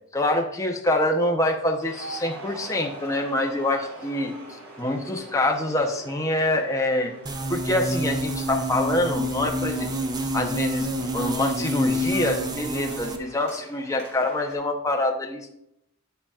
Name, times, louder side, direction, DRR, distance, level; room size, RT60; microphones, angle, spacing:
voice 1, 0.1-4.3 4.8-7.1 7.5-9.9 10.3-10.9 11.1-15.5, left 1 dB, 15° left, 2 dB, 0.8 m, -25 dB
sound 1, 1.8-14.5, right 1 dB, 85° right, 2.6 m, -44 dB
sound 2, 7.3-13.2, equal, 20° right, 0.5 m, -28 dB
8.5 x 7.9 x 2.4 m, 0.78 s
head